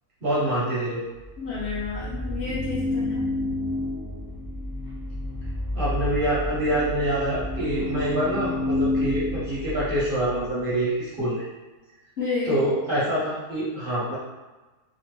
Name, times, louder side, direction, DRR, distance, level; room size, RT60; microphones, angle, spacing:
voice 1, 0.2-1.0 5.7-11.4 12.4-14.2, right 1 dB, 50° right, -9 dB, 0.7 m, -26 dB
sound 1, 1.2-10.5, left 2 dB, 5° right, 0.5 m, -30 dB
voice 2, 1.4-3.2 12.2-12.6, left 4 dB, 55° left, -7 dB, 0.8 m, -30 dB
3.0 x 2.0 x 3.1 m, 1.2 s
omnidirectional pair, 1.6 m